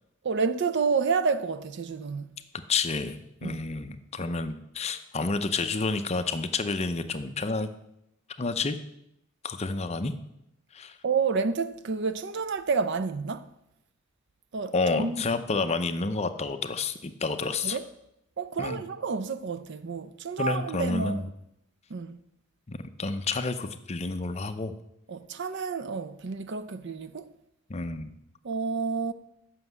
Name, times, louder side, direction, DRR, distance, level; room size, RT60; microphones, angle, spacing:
voice 1, 0.2-2.4 3.4-3.6 11.0-13.5 14.5-15.3 17.6-17.9 18.4-21.2 21.9-22.2 25.1-27.3 28.4-29.1, right 5 dB, 55° right, 0.5 m, -29 dB
voice 2, 2.7-7.7 8.4-8.8 9.4-10.1 10.7-11.0 14.7-17.8 18.6-18.8 20.4-21.3 22.7-24.7 27.7-28.1, left 3 dB, 30° left, 0.6 m, -29 dB
7.6 x 6.1 x 7.9 m
head